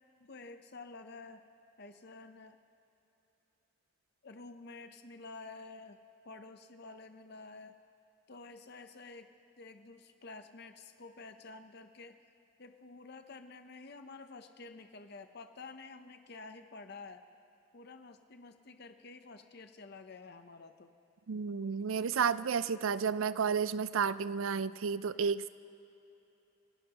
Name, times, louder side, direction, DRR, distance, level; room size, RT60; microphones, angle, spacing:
voice 1, 0.2-1.5 1.8-2.6 4.2-7.8 8.3-9.3 9.6-12.2 12.6-17.2 17.7-20.9, left 3 dB, 50° left, 8 dB, 0.7 m, -50 dB
voice 2, 21.3-25.5, right 6 dB, 80° right, 16 dB, 0.4 m, -31 dB
29.5 x 17.0 x 2.9 m, 3.0 s
head